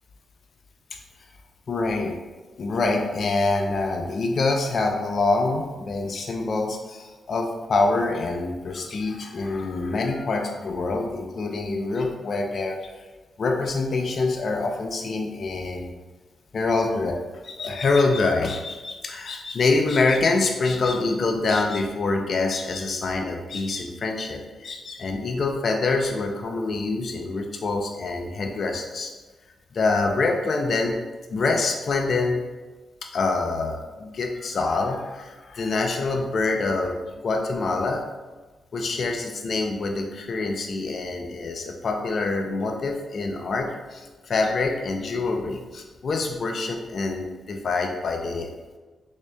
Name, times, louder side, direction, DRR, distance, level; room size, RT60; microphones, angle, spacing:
voice 1, 1.7-2.2 2.6-12.8 13.4-15.9 16.5-29.1 29.7-31.0 31.3-32.4 33.1-37.0 37.2-38.0 38.7-48.5, left 3 dB, 55° left, 2 dB, 0.4 m, -25 dB
3.4 x 2.7 x 3.3 m, 1.3 s
cardioid pair, 75°, 0 cm